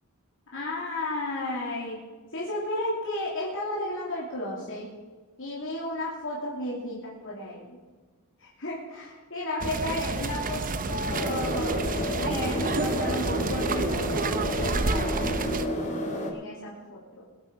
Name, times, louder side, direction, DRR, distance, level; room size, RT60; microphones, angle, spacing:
voice 1, 0.5-2.0 2.3-4.9 5.4-7.8 8.4-11.8 12.2-15.3 16.3-17.3, left 1 dB, 60° left, -5 dB, 3.0 m, -33 dB
sound 1, 9.6-15.7, right 3 dB, 40° right, 0.8 m, -30 dB
sound 2, 11.1-16.3, equal, 35° left, 2.5 m, -30 dB
22.0 x 7.9 x 5.4 m, 1.4 s
head